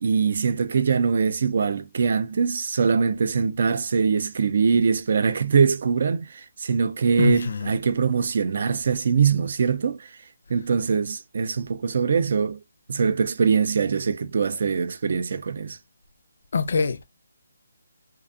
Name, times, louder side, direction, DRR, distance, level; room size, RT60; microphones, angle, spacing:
voice 1, 0.0-10.2 10.5-12.6 12.9-15.8, right 5 dB, 55° right, 0.4 m, -23 dB
voice 2, 7.2-7.7 16.5-17.0, left 4 dB, 60° left, 0.5 m, -23 dB
2.5 x 2.2 x 2.6 m
figure-of-eight pair, 155°, 0 cm